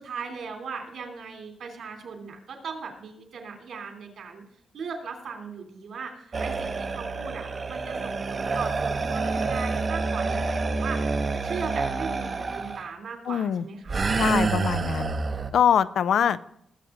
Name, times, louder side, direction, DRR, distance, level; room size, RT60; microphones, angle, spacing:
voice 1, 0.0-4.4 4.7-11.1 11.4-14.0 16.2-16.3, right 5 dB, 70° right, 3 dB, 3.1 m, -38 dB
sound 1, 6.3-12.8 13.9-15.5, right 4 dB, 35° right, 0.8 m, -28 dB
voice 2, 13.3-13.6 14.2-15.1 15.5-16.4, left 8 dB, 75° left, 15 dB, 0.5 m, -23 dB
19.5 x 7.9 x 3.8 m, 0.70 s
wide cardioid pair, 170°, 0 cm